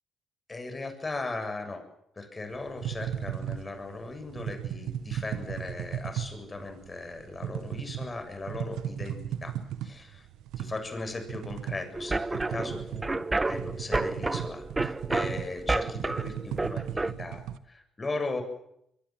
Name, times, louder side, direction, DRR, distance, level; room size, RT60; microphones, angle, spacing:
voice 1, 0.5-1.8 2.2-9.5 9.8-10.3 10.6-18.4, left 3 dB, 25° left, 7 dB, 7.1 m, -38 dB
sound 1, 2.5-17.6, right 10 dB, 90° right, 1.2 m, -37 dB
sound 2, 11.9-17.1, right 2 dB, 20° right, 1.1 m, -30 dB
24.0 x 22.5 x 7.6 m, 0.76 s
cardioid pair, 90°, 0 cm